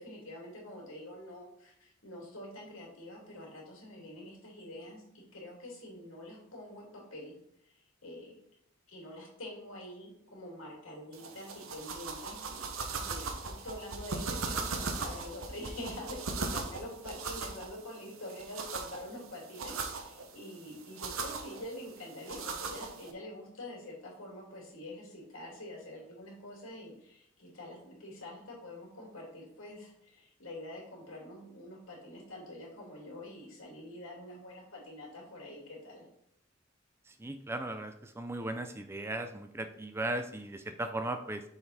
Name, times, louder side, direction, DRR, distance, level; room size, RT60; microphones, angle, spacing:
voice 1, 0.0-7.4 7.6-7.8 8.0-8.4 8.9-36.0, left 1 dB, 90° left, -3 dB, 2.8 m, -46 dB
sound 1, 11.1-23.1, right 4 dB, 90° right, 0.8 m, -39 dB
voice 2, 37.2-41.4, right 2 dB, 10° right, 8 dB, 0.4 m, -37 dB
6.8 x 4.1 x 4.2 m, 0.75 s
head